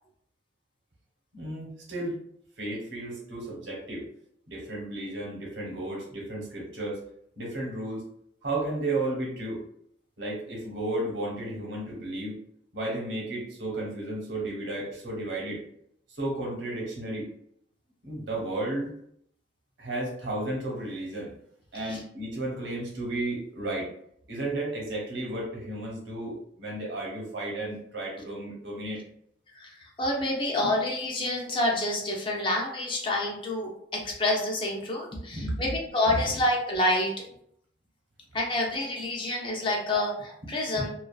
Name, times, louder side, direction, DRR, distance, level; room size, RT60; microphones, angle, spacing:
voice 1, 1.3-2.1 2.6-4.1 4.5-7.0 7.4-8.0 8.4-9.6 10.2-12.4 12.7-15.6 16.2-17.3 18.0-18.9 19.8-21.3 21.7-23.9 24.3-29.0 35.1-35.7 36.1-36.2, right 2 dB, 80° right, -2 dB, 0.9 m, -33 dB
voice 2, 29.6-37.1 38.3-40.9, left 1 dB, 25° left, -1 dB, 0.5 m, -28 dB
2.3 x 2.3 x 2.3 m, 0.69 s
head